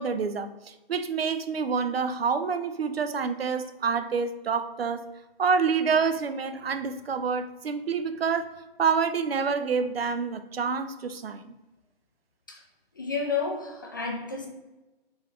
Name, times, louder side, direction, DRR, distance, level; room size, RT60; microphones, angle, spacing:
voice 1, 0.0-5.0 5.4-8.5 8.8-11.5, right 5 dB, 80° right, 10 dB, 0.5 m, -27 dB
voice 2, 13.0-14.5, left 5 dB, 20° left, 1 dB, 0.4 m, -31 dB
3.9 x 3.8 x 3.2 m, 1.0 s
figure-of-eight pair, 140°, 30 cm